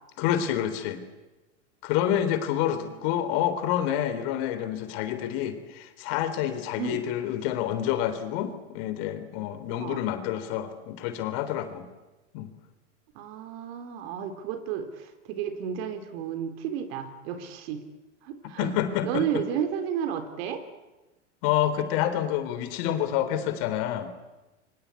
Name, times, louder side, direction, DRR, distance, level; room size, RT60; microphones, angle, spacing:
voice 1, 0.2-1.0 1.8-11.9 12.3-12.5 18.6-19.2 21.4-24.1, left 11 dB, 55° left, 10 dB, 3.7 m, -28 dB
voice 2, 2.7-3.1 6.8-7.0 9.8-10.0 13.2-17.8 18.2-18.7 19.0-20.6, right 8 dB, 55° right, 9 dB, 3.8 m, -32 dB
27.5 x 24.5 x 8.5 m, 1.1 s
hypercardioid pair, 105°, 35 cm